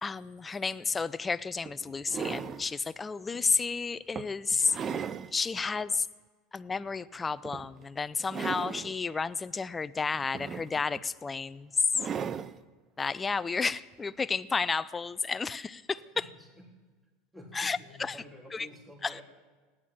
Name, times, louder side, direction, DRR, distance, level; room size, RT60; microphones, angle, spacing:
voice 1, 0.0-6.1 6.5-11.7 13.0-16.3 17.5-18.2 18.5-18.7 19.0-19.2, left 4 dB, 20° left, 16 dB, 0.6 m, -32 dB
sound 1, 0.9-1.0 1.7-2.7 3.3-3.5 4.2-5.3 5.8-5.9 7.4-7.8 8.2-9.0 10.1-11.0 11.9-12.6 13.9-14.0, right 7 dB, 35° right, 0.6 m, -37 dB
voice 2, 15.9-16.6 17.3-19.2, left 1 dB, 15° right, 1 dB, 3.5 m, -50 dB
17.5 x 10.5 x 7.5 m, 1.4 s
hypercardioid pair, 90°, 0 cm